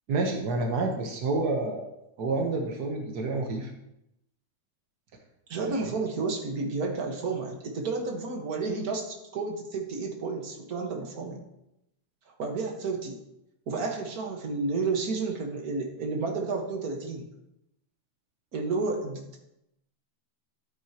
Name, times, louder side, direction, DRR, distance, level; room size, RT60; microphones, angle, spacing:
voice 1, 0.1-1.9 2.2-3.7 5.6-5.9, right 3 dB, 70° right, 1 dB, 0.9 m, -29 dB
voice 2, 5.5-11.4 12.3-13.2 13.7-17.3 18.5-19.4, right 3 dB, 45° right, 1 dB, 1.3 m, -31 dB
13.0 x 8.9 x 2.9 m, 0.85 s
omnidirectional pair, 3.4 m